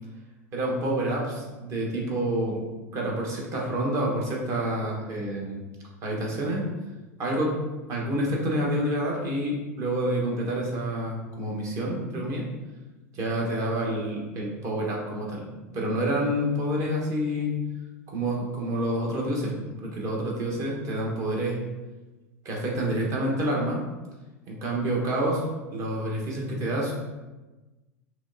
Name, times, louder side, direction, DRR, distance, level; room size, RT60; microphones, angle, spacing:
voice 1, 0.5-2.6 2.9-5.6 6.0-6.7 7.2-7.5 7.9-12.5 13.1-17.5 18.1-21.6 22.4-23.8 24.5-25.4 25.7-26.9, right 1 dB, 40° right, -2 dB, 1.1 m, -28 dB
5.9 x 2.2 x 2.6 m, 1.2 s
figure-of-eight pair, 80°, 9 cm